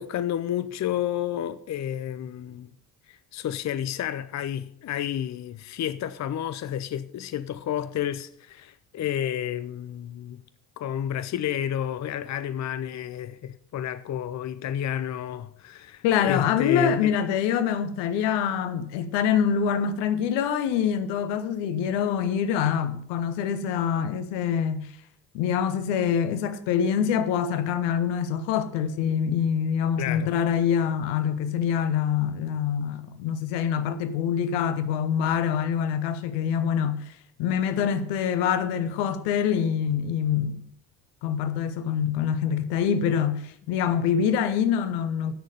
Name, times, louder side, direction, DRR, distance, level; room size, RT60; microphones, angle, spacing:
voice 1, 0.0-2.7 3.1-10.4 10.8-17.1 30.0-30.3, left 10 dB, 40° left, 0.7 m, -31 dB
voice 2, 16.0-24.9 25.3-37.1 37.4-40.6 41.2-45.3, left 8 dB, 70° left, 1.1 m, -25 dB
15.0 x 6.5 x 5.4 m
figure-of-eight pair, 45°, 44 cm